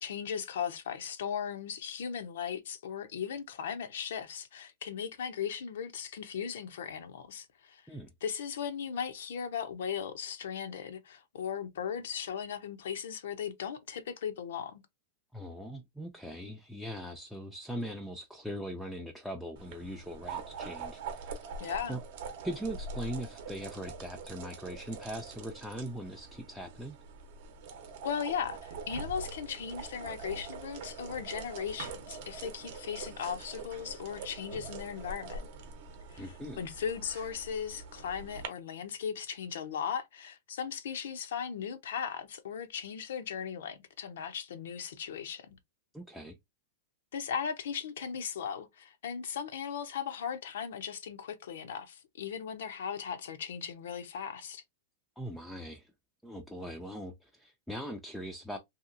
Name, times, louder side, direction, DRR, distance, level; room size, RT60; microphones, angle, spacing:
voice 1, 0.0-7.8 8.2-14.8 21.6-22.0 28.0-35.5 36.1-45.5 47.1-54.6, left 7 dB, 80° left, 0.6 m, -37 dB
voice 2, 15.3-21.4 21.9-22.0 22.4-27.0 36.2-36.7 45.9-46.4 55.2-55.9 56.2-58.6, equal, ahead, 0.4 m, -40 dB
sound 1, 19.6-38.5, right 4 dB, 55° right, 0.7 m, -44 dB
2.8 x 2.8 x 2.5 m
supercardioid pair, 150°, 0 cm